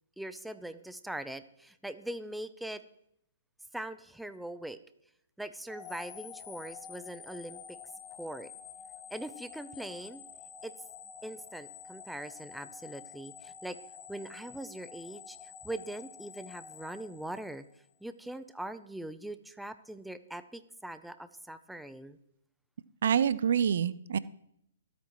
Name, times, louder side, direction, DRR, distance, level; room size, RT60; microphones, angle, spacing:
voice 1, 0.2-2.8 3.7-4.8 5.4-7.8 8.1-8.5 9.1-10.2 10.6-10.7 11.2-13.8 14.1-17.6 18.0-22.2, right 1 dB, ahead, 12 dB, 0.5 m, -41 dB
sound 1, 5.7-17.9, left 8 dB, 20° left, 1.1 m, -49 dB
voice 2, 23.0-24.2, right 8 dB, 65° right, 18 dB, 0.4 m, -26 dB
23.0 x 8.5 x 3.1 m, 0.74 s
hypercardioid pair, 135°, 0 cm